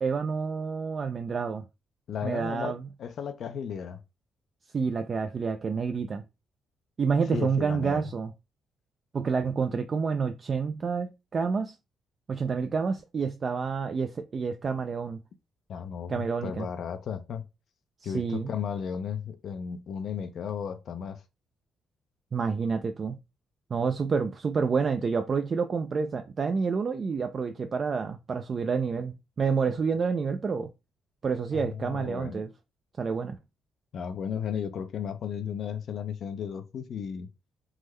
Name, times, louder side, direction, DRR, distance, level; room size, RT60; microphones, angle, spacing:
voice 1, 0.0-1.6 2.2-2.8 4.7-6.2 7.0-8.3 9.1-11.8 12.3-15.2 16.1-16.7 18.0-18.5 22.3-23.2 23.7-30.7 31.2-32.5 33.0-33.4, right 5 dB, 40° right, 0.3 m, -28 dB
voice 2, 2.1-4.0 7.3-8.0 15.7-17.4 18.0-21.2 31.5-32.4 33.9-37.3, left 7 dB, 65° left, 0.4 m, -34 dB
3.6 x 2.1 x 3.1 m
cardioid pair, 90°, 0 cm